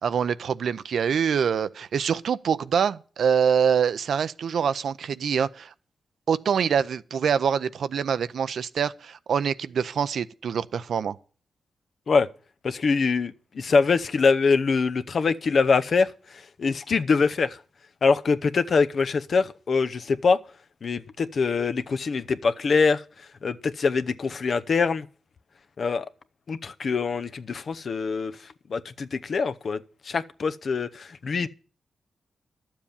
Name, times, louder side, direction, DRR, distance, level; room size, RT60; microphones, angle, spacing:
voice 1, 0.0-5.7 6.3-11.2, right 7 dB, 75° right, 0.6 m, -25 dB
voice 2, 12.6-16.1 16.6-17.6 18.0-20.4 20.8-23.0 23.4-25.1 25.8-26.1 26.5-28.3 28.7-29.8 30.1-31.5, left 4 dB, 60° left, 0.7 m, -24 dB
12.0 x 7.4 x 7.0 m
cardioid pair, 60°, 0 cm